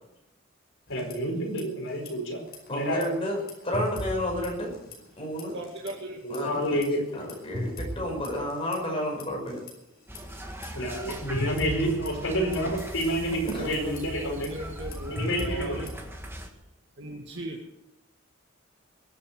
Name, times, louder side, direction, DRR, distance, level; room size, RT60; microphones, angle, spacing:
voice 1, 0.9-2.4 2.7-3.1 6.2-7.3 10.7-14.5 15.1-15.9, equal, 70° left, 1 dB, 4.9 m, -29 dB
sound 1, 0.9-1.6 1.9-2.1 2.5-5.1 5.4-5.9 6.3-9.7 10.1-16.1, left 1 dB, 45° left, 5.2 m, -39 dB
voice 2, 2.7-3.4 3.6-4.7 5.2-5.5 6.3-9.6 13.4-13.7, equal, 25° left, -1 dB, 5.9 m, -31 dB
voice 3, 5.5-6.2 10.3-10.4 11.2-12.0 12.4-12.6 13.5-15.9 17.0-17.7, right 1 dB, 55° right, -1 dB, 2.2 m, -39 dB
sound 2, 10.1-16.5, right 1 dB, 10° right, 1.7 m, -40 dB
22.0 x 8.7 x 6.7 m, 0.84 s
head